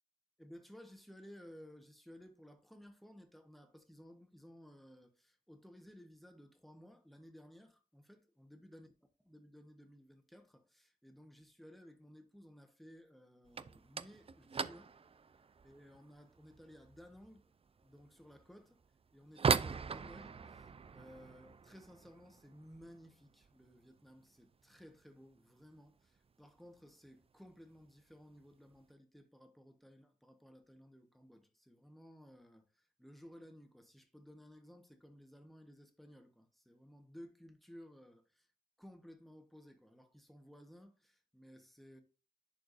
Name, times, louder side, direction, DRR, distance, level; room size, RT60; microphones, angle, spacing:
voice 1, 0.4-8.9 9.2-14.9 15.6-17.5 17.8-18.8 19.1-38.5 38.8-42.0, equal, ahead, 1.2 m, -57 dB
sound 1, 13.4-24.2 24.5-25.1 25.3-25.7 26.0-26.1 26.8-26.9 27.8-28.0 28.3-28.8, right 5 dB, 40° right, 0.4 m, -41 dB
10.5 x 4.6 x 2.6 m
wide cardioid pair, 90°, 15 cm